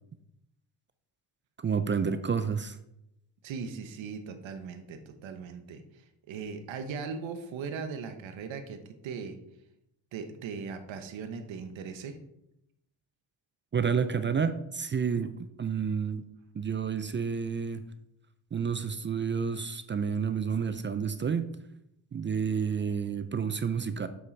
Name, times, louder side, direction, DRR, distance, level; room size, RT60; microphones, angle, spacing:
voice 1, 1.6-2.8 13.7-16.2 16.5-17.8 18.5-21.5 22.1-24.1, right 6 dB, 25° right, 12 dB, 0.4 m, -30 dB
voice 2, 3.4-5.8 6.3-9.4 10.1-12.1, right 5 dB, 70° right, 7 dB, 1.1 m, -39 dB
7.8 x 5.6 x 4.0 m, 0.82 s
cardioid pair, 80°, 48 cm